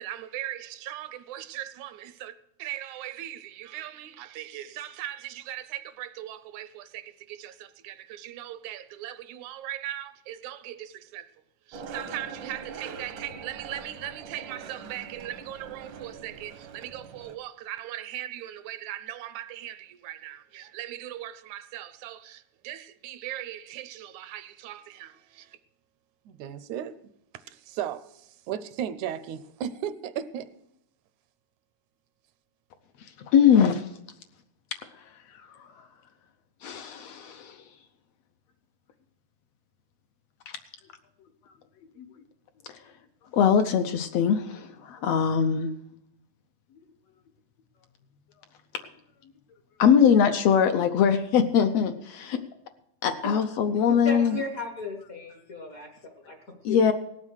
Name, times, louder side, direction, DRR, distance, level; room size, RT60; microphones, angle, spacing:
voice 1, 0.0-2.3 2.6-11.3 11.7-25.6 26.3-26.9 27.3-30.5, right 11 dB, 80° right, 14 dB, 2.0 m, -38 dB
Skateboard, 11.7-17.4, right 5 dB, 65° right, 1.2 m, -42 dB
voice 2, 33.3-33.9 36.6-37.6 42.7-42.8 43.3-45.7 49.8-52.4 53.0-54.4 56.6-56.9, left 7 dB, 70° left, 7 dB, 1.7 m, -22 dB
voice 3, 54.0-56.8, left 3 dB, 45° left, 3 dB, 1.1 m, -35 dB
18.0 x 7.5 x 6.3 m, 0.79 s
omnidirectional pair, 3.4 m